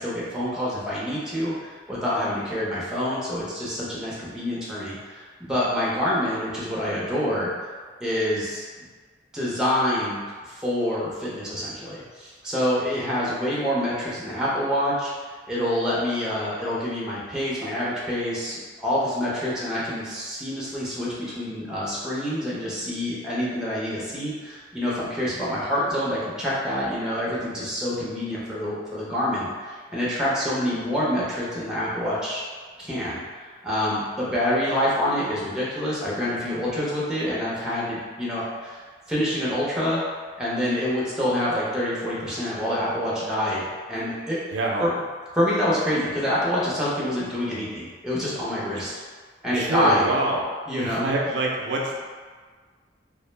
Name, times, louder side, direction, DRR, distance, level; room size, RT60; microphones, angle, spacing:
voice 1, 0.0-7.5 8.0-8.7 9.3-15.1 15.5-32.4 32.8-40.0 40.4-44.4 44.8-44.9 45.3-48.9 49.4-50.0 50.7-51.1, left 1 dB, 5° right, -8 dB, 0.5 m, -27 dB
voice 2, 44.5-44.9 48.8-48.9 49.5-50.5 50.8-52.0, right 2 dB, 75° right, -1 dB, 0.4 m, -25 dB
2.4 x 2.0 x 3.1 m, 1.5 s
head